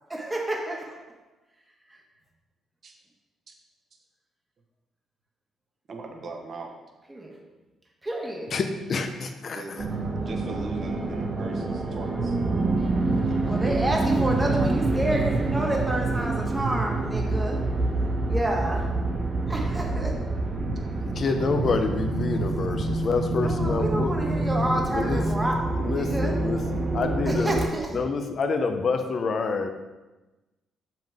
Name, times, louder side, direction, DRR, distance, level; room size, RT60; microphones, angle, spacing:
voice 1, 0.1-1.0 1.9-2.0 7.1-7.4 8.0-8.5 13.4-17.7 18.3-19.0 19.5-20.3 23.4-26.3 27.3-27.9, right 1 dB, 15° right, 0 dB, 1.4 m, -29 dB
voice 2, 5.9-6.7 9.5-9.7 10.2-12.4 13.1-14.6, right 3 dB, 50° right, 2 dB, 1.2 m, -40 dB
voice 3, 8.5-9.9 21.0-24.1 24.9-25.2 25.8-27.6 27.9-29.7, left 4 dB, 50° left, 7 dB, 0.8 m, -27 dB
sound 1, 9.8-27.6, right 2 dB, 35° right, 1.4 m, -27 dB
7.3 x 5.8 x 3.6 m, 1.1 s
cardioid pair, 90°, 0 cm